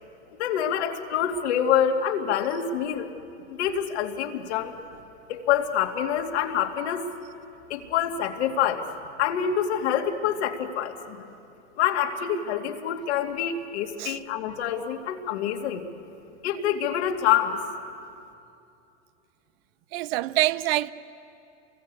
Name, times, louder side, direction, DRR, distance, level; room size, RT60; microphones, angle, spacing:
voice 1, 0.4-3.1 3.5-4.7 5.3-7.0 7.7-8.8 9.2-11.2 11.8-15.8 16.4-17.6, left 9 dB, 65° left, 2.6 m, -26 dB
voice 2, 19.9-20.9, right 17 dB, 55° right, 0.9 m, -25 dB
29.0 x 23.5 x 8.4 m
hypercardioid pair, 115°, 35 cm